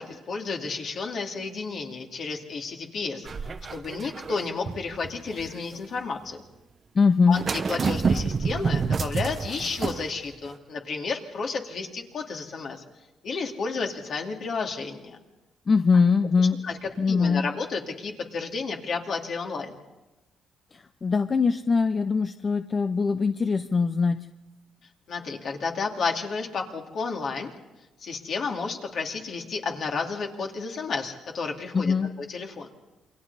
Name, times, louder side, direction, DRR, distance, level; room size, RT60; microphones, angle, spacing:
voice 1, 0.0-3.3 3.7-6.4 7.3-12.8 13.2-15.2 16.6-19.8 25.1-27.5 28.0-32.7, left 4 dB, 60° left, 1 dB, 2.7 m, -32 dB
sound 1, 3.2-5.8 7.3-10.1 10.5-10.6, right 5 dB, 40° right, 0.9 m, -28 dB
voice 2, 6.9-7.4 15.7-16.6 17.0-17.5 20.7-24.3 31.7-32.1, left 5 dB, 35° left, 9 dB, 0.7 m, -22 dB
28.0 x 23.0 x 4.2 m, 1.0 s
cardioid pair, 90°, 0 cm